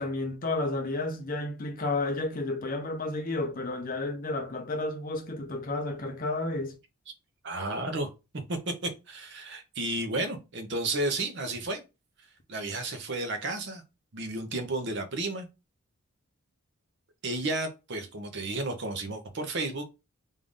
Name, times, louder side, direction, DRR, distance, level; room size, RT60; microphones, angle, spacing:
voice 1, 0.0-6.7, left 2 dB, 40° left, 0.6 m, -31 dB
voice 2, 7.4-8.1 8.5-11.8 12.5-13.8 14.1-15.5 17.2-19.8, right 2 dB, 50° right, 0.7 m, -32 dB
3.6 x 2.5 x 3.5 m
head